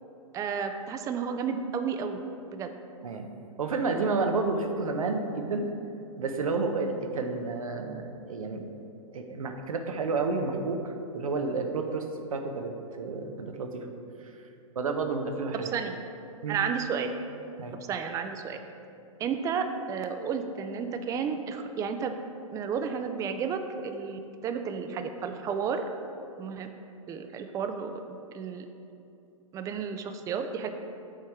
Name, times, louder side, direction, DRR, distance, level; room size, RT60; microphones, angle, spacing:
voice 1, 0.3-2.2 2.5-2.7 15.7-15.9 16.5-17.1 17.9-18.6 19.2-22.1 22.5-25.8 26.4-26.7 27.1-28.7 29.5-30.7, right 6 dB, 20° right, 7 dB, 0.4 m, -32 dB
voice 2, 3.6-5.7 6.2-8.6 9.1-12.1 12.3-13.9 14.8-15.7 16.4-16.6 17.6-17.8, right 3 dB, 85° right, 5 dB, 0.7 m, -30 dB
7.4 x 3.5 x 4.5 m, 2.7 s
hypercardioid pair, 115°, 18 cm